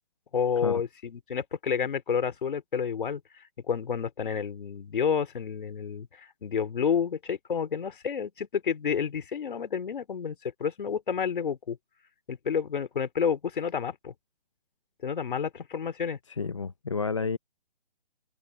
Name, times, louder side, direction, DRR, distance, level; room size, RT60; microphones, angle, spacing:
voice 1, 0.3-3.2 3.7-11.8 12.3-14.1 15.0-16.2, left 7 dB, 55° left, 2.9 m, -30 dB
voice 2, 16.4-17.4, left 4 dB, 30° left, 0.5 m, -30 dB
open air
hypercardioid pair, 175°, 31 cm